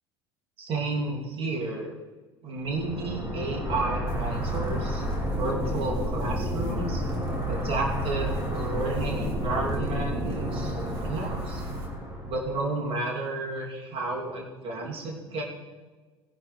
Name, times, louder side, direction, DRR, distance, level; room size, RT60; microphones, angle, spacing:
voice 1, 0.6-1.9 2.4-7.0 7.5-10.8 11.0-11.6 12.3-15.4, right 2 dB, 40° right, -1 dB, 2.9 m, -32 dB
sound 1, 2.7-12.5, equal, 20° right, 4.1 m, -31 dB
sound 2, 4.1-11.9, right 2 dB, 65° right, 2.7 m, -39 dB
19.0 x 10.5 x 3.3 m, 1.3 s
figure-of-eight pair, 65°, 14 cm